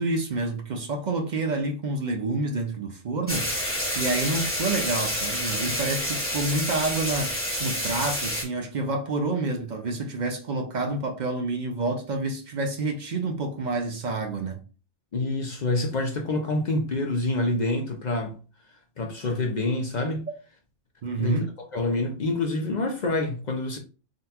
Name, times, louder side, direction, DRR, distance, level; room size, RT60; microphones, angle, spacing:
voice 1, 0.0-3.5 4.0-7.3 7.6-14.6 21.0-21.5, right 3 dB, 55° right, 0.5 m, -28 dB
sound 1, 3.3-8.4, equal, 10° left, 1.1 m, -28 dB
voice 2, 15.1-18.3 19.0-20.2 21.2-21.4 21.7-23.8, left 2 dB, 50° left, 0.6 m, -27 dB
3.8 x 2.2 x 2.8 m
omnidirectional pair, 1.2 m